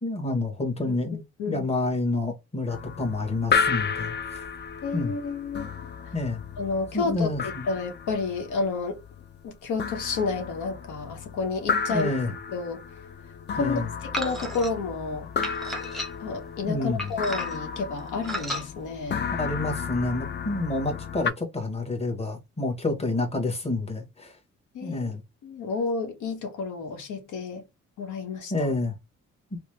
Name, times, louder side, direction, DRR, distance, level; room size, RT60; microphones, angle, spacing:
voice 1, 0.0-4.5 4.9-5.1 6.1-6.4 6.9-7.7 11.9-12.3 13.6-13.9 16.7-17.1 19.3-24.3 24.8-25.2 28.5-28.9, left 2 dB, 20° left, 1.2 m, -28 dB
sound 1, 2.7-21.3, left 6 dB, 35° left, 0.4 m, -33 dB
voice 2, 4.8-5.7 6.6-9.0 9.4-12.1 12.5-12.8 13.5-13.8 14.1-15.3 16.2-19.3 24.7-25.1 25.4-27.6 28.0-28.7, left 4 dB, 80° left, 0.9 m, -30 dB
sound 2, 14.1-14.7 15.4-16.4 17.0-17.7 18.2-18.7, equal, ahead, 0.8 m, -33 dB
3.0 x 2.1 x 3.2 m
cardioid pair, 90°, 30 cm